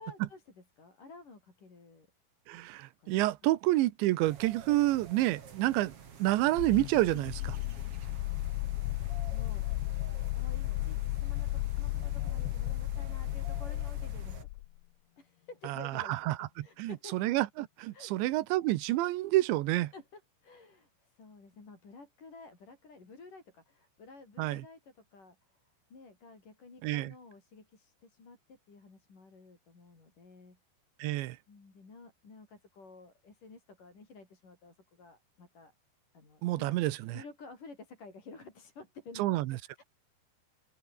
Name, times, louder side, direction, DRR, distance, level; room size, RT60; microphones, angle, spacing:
voice 1, 0.0-2.1 3.0-3.1 8.0-9.9 10.2-14.5 15.2-17.2 17.9-18.1 19.8-25.6 25.9-30.6 31.5-35.7 36.1-36.8 37.1-39.8, left 3 dB, 45° left, 8.1 m, -53 dB
voice 2, 2.5-7.6 15.6-16.5 16.8-19.9 24.4-24.6 26.8-27.1 31.0-31.4 36.4-37.2 39.2-39.6, right 17 dB, 85° right, 3.3 m, -29 dB
sound 1, 4.2-14.4, right 7 dB, 40° right, 2.5 m, -49 dB
sound 2, 6.6-14.8, left 20 dB, 85° left, 3.0 m, -34 dB
omnidirectional pair, 5.1 m